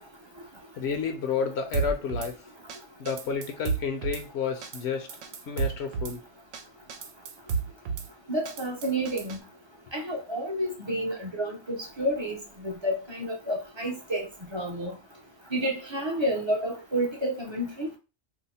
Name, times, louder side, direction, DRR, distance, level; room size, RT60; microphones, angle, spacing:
voice 1, 0.8-2.4 3.0-5.1 5.5-6.2, left 6 dB, 65° left, 0.8 m, -30 dB
Drum kit / Snare drum, 1.7-2.3 2.7-2.8 3.1-4.2 4.6-4.8 5.1-6.2 6.5-6.6 6.9-8.1 8.5-9.4, right 5 dB, 85° right, 0.9 m, -31 dB
voice 2, 8.3-9.4 9.9-12.4 12.6-14.3 14.5-14.9 15.5-17.9, right 1 dB, 30° right, 0.5 m, -30 dB
2.8 x 2.1 x 4.0 m
omnidirectional pair, 1.2 m